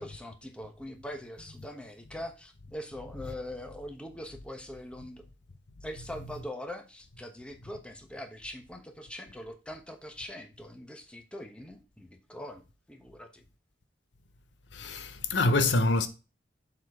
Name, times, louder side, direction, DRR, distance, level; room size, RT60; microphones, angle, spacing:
voice 1, 0.0-5.2 5.8-13.4, left 1 dB, 5° left, 1.0 m, -42 dB
voice 2, 14.7-16.1, left 2 dB, 75° left, 0.7 m, -25 dB
7.3 x 4.2 x 4.7 m
head